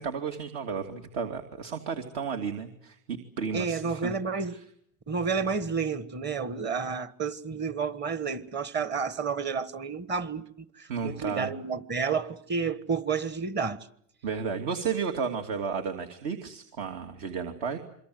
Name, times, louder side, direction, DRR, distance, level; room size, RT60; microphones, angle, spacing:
voice 1, 0.0-4.1 4.5-4.6 10.9-11.5 14.2-17.8, right 6 dB, 65° right, 2.7 m, -33 dB
voice 2, 3.5-4.6 5.1-13.9, right 5 dB, 25° right, 1.5 m, -30 dB
27.5 x 23.5 x 7.9 m
supercardioid pair, 125°, 38 cm